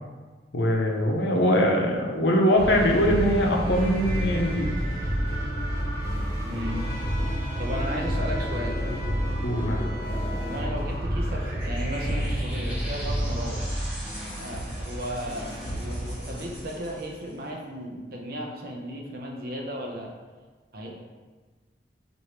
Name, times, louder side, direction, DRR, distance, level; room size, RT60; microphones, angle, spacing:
voice 1, 0.5-4.7 9.4-9.9, equal, 80° left, 0 dB, 0.6 m, -22 dB
sound 1, 2.5-16.6, equal, 20° left, 1.1 m, -29 dB
sound 2, 3.7-17.4, equal, 10° right, 1.5 m, -40 dB
voice 2, 6.4-6.9 7.6-9.0 10.4-13.7 14.4-20.1 20.7-20.9, equal, 55° right, -1 dB, 0.7 m, -35 dB
4.8 x 2.6 x 3.0 m, 1.4 s
head